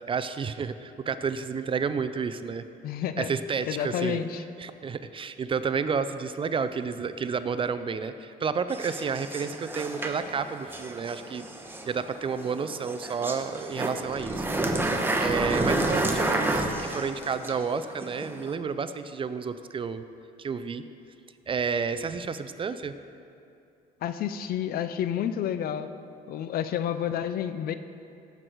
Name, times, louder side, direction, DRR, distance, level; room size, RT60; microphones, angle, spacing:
voice 1, 0.0-2.6 3.2-4.2 4.6-11.4 11.9-14.4 15.2-20.0 20.4-20.8 21.5-22.9, right 5 dB, 30° right, 11 dB, 0.5 m, -30 dB
voice 2, 2.8-3.3 3.7-4.4 24.0-25.9 26.3-27.8, left 9 dB, 60° left, 11 dB, 0.6 m, -30 dB
sound 1, 8.7-18.5, right 2 dB, 10° right, 1.1 m, -30 dB
16.5 x 8.0 x 4.7 m, 2.6 s
cardioid pair, 110°, 17 cm